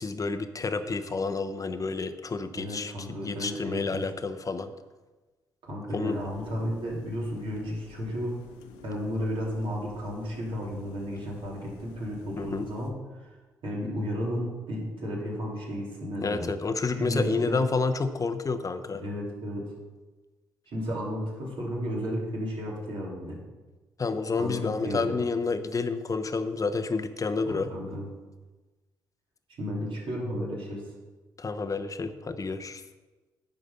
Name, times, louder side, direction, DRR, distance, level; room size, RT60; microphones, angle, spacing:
voice 1, 0.0-4.7 5.9-6.2 12.4-12.6 16.2-19.1 24.0-27.7 31.4-32.8, left 4 dB, 35° left, 9 dB, 0.8 m, -29 dB
voice 2, 2.5-4.0 5.6-8.4 8.8-13.3 13.6-16.5 17.0-17.6 19.0-19.7 20.7-23.4 24.4-25.2 27.4-28.1 29.6-30.8, equal, 60° right, -4 dB, 3.1 m, -33 dB
sound 1, 6.1-12.9, left 6 dB, 80° left, 0.7 m, -50 dB
9.5 x 5.1 x 5.5 m, 1.2 s
hypercardioid pair, 40°, 10 cm